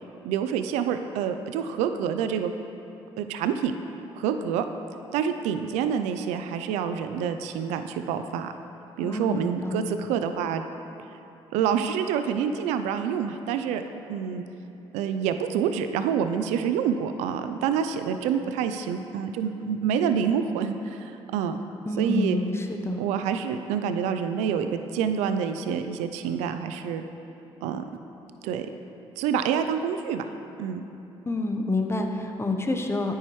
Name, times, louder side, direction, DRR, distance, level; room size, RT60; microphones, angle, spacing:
voice 1, 0.2-2.5 3.2-3.7 4.2-4.6 5.1-8.5 9.0-10.6 11.5-13.8 14.1-14.4 14.9-21.6 22.0-22.4 23.0-27.0 27.6-27.8 28.4-28.7 29.2-30.3 30.6-30.8, right 7 dB, 85° right, 8 dB, 0.4 m, -27 dB
voice 2, 9.0-10.0 21.9-23.0 31.3-33.1, left 2 dB, 20° left, 4 dB, 0.9 m, -28 dB
9.2 x 8.8 x 3.1 m, 2.9 s
supercardioid pair, 65°, 11 cm